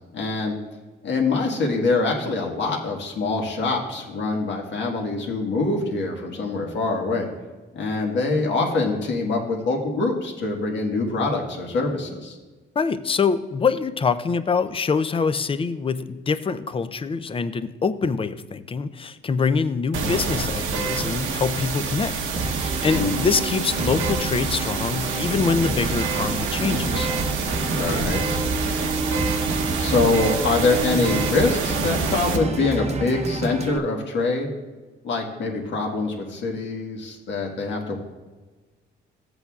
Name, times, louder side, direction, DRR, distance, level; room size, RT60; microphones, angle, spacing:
voice 1, 0.1-0.5 1.0-7.3 7.7-12.4 22.9-23.3 27.7-28.2 29.8-34.5 35.0-38.0, left 3 dB, 65° left, 1 dB, 1.7 m, -24 dB
voice 2, 12.8-22.1 22.4-27.1, left 5 dB, 25° left, 12 dB, 0.5 m, -24 dB
sound 1, 19.9-32.4, right 4 dB, 80° right, 1.1 m, -27 dB
sound 2, 22.4-33.8, right 3 dB, 35° right, 0.8 m, -29 dB
14.5 x 7.9 x 2.4 m, 1.3 s
cardioid pair, 90°, 20 cm